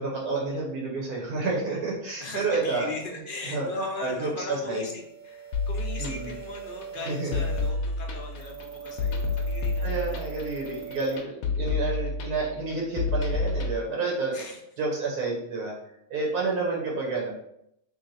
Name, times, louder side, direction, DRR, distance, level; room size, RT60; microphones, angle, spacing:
voice 1, 0.0-2.9 3.5-3.7 4.0-4.8 6.0-6.3 7.0-7.3 9.8-14.3 14.8-15.7 16.1-17.3, right 3 dB, 85° right, -3 dB, 1.5 m, -29 dB
voice 2, 2.2-10.2 14.3-14.6, left 2 dB, 50° left, 0 dB, 0.6 m, -38 dB
sound 1, 5.0-11.2, right 7 dB, 40° right, 0.4 m, -42 dB
sound 2, 5.5-13.7, left 3 dB, 70° left, 1.0 m, -29 dB
3.2 x 3.1 x 4.0 m, 0.76 s
omnidirectional pair, 1.6 m